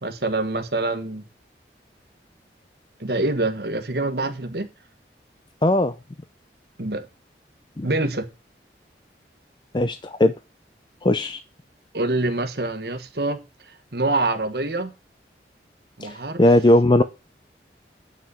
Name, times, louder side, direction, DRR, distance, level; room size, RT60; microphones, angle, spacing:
voice 1, 0.0-1.2 3.0-4.7 6.8-7.1 7.8-8.2 11.9-13.4 13.9-14.9 16.0-16.4, right 2 dB, 65° right, 1.4 m, -25 dB
voice 2, 5.6-5.9 7.8-7.9 9.7-10.3 11.0-11.4 16.0-17.0, left 1 dB, 25° left, 0.5 m, -18 dB
9.3 x 6.2 x 5.6 m
head